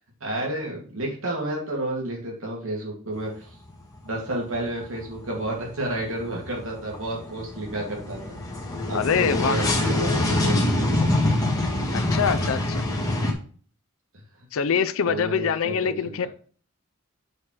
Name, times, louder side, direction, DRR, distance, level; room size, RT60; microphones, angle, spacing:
voice 1, 0.2-3.6 4.0-8.4 8.9-11.8 14.7-16.3, right 1 dB, 65° right, -2 dB, 2.6 m, -31 dB
sound 1, 3.2-3.8 4.1-13.3, left 1 dB, 15° left, 1.5 m, -25 dB
voice 2, 8.9-9.6 11.9-12.8 14.5-16.3, left 7 dB, 70° left, 13 dB, 0.5 m, -24 dB
7.8 x 4.5 x 4.5 m, 0.42 s
head